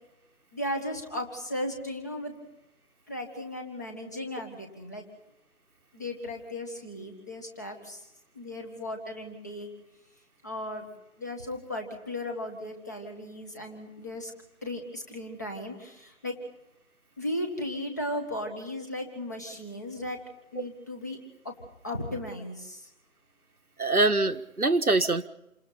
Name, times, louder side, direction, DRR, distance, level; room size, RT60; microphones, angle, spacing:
voice 1, 0.5-2.4 3.1-5.0 5.9-8.1 8.3-9.7 10.4-10.9 11.2-14.3 14.6-16.4 17.2-20.2 20.5-21.2 21.4-21.6 21.8-22.9, left 1 dB, 10° left, 3 dB, 1.7 m, -36 dB
voice 2, 23.8-25.3, right 2 dB, 85° right, 8 dB, 1.6 m, -24 dB
28.5 x 26.5 x 4.3 m, 0.86 s
figure-of-eight pair, 165°, 43 cm